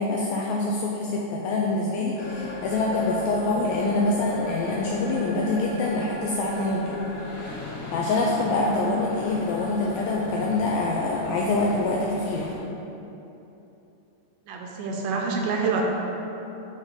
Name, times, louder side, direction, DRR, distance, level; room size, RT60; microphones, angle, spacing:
voice 1, 0.0-7.0 7.9-12.5, left 2 dB, 90° left, -2 dB, 2.0 m, -25 dB
sound 1, 2.2-12.6, left 2 dB, 65° left, 1.7 m, -37 dB
voice 2, 14.5-15.8, right 5 dB, 80° right, 0 dB, 2.5 m, -27 dB
9.1 x 3.6 x 5.4 m, 3.0 s
omnidirectional pair, 4.9 m